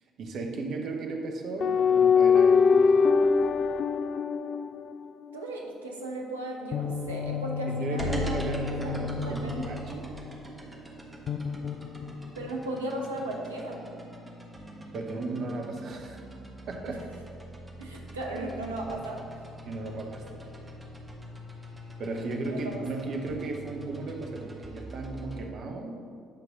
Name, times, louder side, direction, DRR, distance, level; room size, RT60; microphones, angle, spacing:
voice 1, 0.2-3.1 7.7-10.0 14.9-16.2 16.7-17.0 19.6-20.4 22.0-26.0, right 3 dB, 50° right, 2 dB, 1.0 m, -35 dB
sound 1, 1.6-5.3 6.7-10.5 11.3-12.5, left 5 dB, 45° left, 0.3 m, -25 dB
voice 2, 5.3-8.4 8.7-8.9 9.2-10.1 12.3-13.8 16.9-17.0 17.8-19.3 20.6-20.8 22.3-22.9, right 1 dB, 80° right, 0 dB, 0.8 m, -36 dB
sound 2, 8.0-25.4, right 1 dB, 20° right, 1.4 m, -42 dB
9.0 x 4.1 x 5.2 m, 2.4 s
figure-of-eight pair, 50°, 0 cm